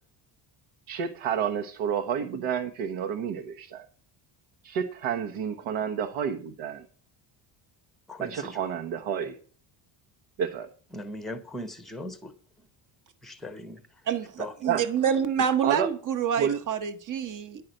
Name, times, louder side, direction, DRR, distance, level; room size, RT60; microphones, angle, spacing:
voice 1, 0.9-3.8 4.6-6.8 8.2-9.4 10.4-10.7 14.6-14.8 15.6-15.9 16.4-16.6, right 8 dB, 75° right, 1.2 m, -29 dB
voice 2, 8.1-8.7 10.9-12.7 13.2-14.0 14.4-14.5, left 1 dB, ahead, 0.8 m, -40 dB
voice 3, 14.6-17.6, right 8 dB, 40° right, 1.1 m, -27 dB
10.5 x 5.7 x 7.7 m
cardioid pair, 170°, 49 cm